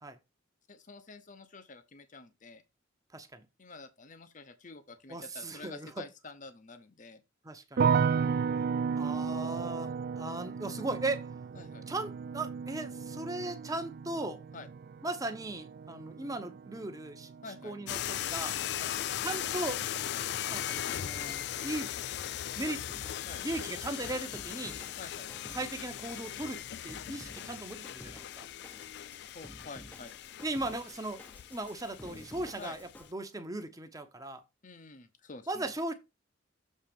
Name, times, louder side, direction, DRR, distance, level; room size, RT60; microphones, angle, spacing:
voice 1, 0.7-2.6 3.6-7.2 11.6-11.8 14.5-14.7 17.4-17.7 18.8-18.9 23.2-23.4 25.0-25.3 29.3-30.1 32.6-32.8 34.6-35.7, left 3 dB, 40° left, 0.8 m, -48 dB
voice 2, 3.1-3.5 5.1-6.0 7.4-7.9 9.0-11.3 11.9-14.4 15.0-17.3 17.6-18.6 19.2-19.8 20.5-21.9 22.5-22.8 23.4-24.8 25.5-28.5 30.4-31.2 31.5-34.4 35.5-35.9, right 2 dB, 15° right, 0.9 m, -38 dB
sound 1, 7.8-18.8 19.1-19.9, right 6 dB, 50° right, 0.3 m, -34 dB
sound 2, 17.9-33.1, left 11 dB, 55° left, 0.3 m, -38 dB
Drum kit, 22.9-33.1, left 1 dB, 10° left, 0.7 m, -53 dB
7.5 x 3.9 x 5.3 m
head